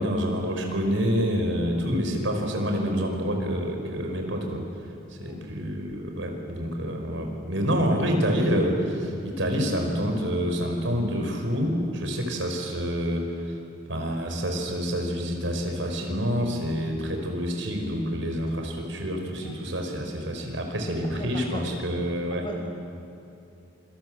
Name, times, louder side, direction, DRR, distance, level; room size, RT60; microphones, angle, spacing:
voice 1, 0.0-4.6 5.2-13.5 13.9-22.4, equal, 85° right, 3 dB, 5.2 m, -27 dB
voice 2, 21.0-21.9 22.3-22.6, left 1 dB, 25° left, 1 dB, 5.4 m, -39 dB
27.5 x 26.0 x 7.8 m, 2.7 s
head